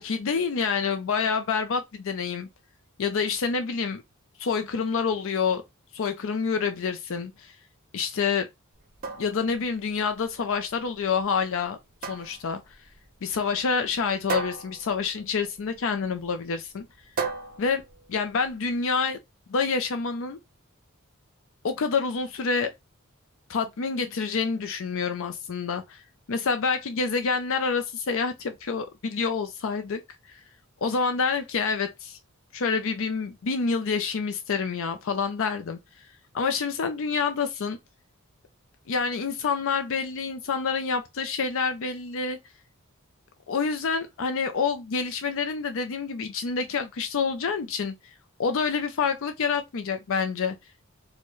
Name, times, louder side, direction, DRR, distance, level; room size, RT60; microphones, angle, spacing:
voice 1, 0.0-2.5 3.0-4.0 4.4-5.6 5.9-7.6 7.9-8.5 9.2-11.8 12.1-12.6 13.2-16.9 17.6-17.8 18.1-19.2 19.5-20.4 21.6-22.7 23.5-26.0 26.3-30.0 30.3-30.4 30.8-32.2 32.5-35.8 36.3-37.8 38.9-42.4 43.5-47.9 48.4-50.6, left 5 dB, 65° left, 0.5 m, -27 dB
sound 1, 8.7-18.7, right 5 dB, 40° right, 0.8 m, -37 dB
4.4 x 2.2 x 3.0 m
head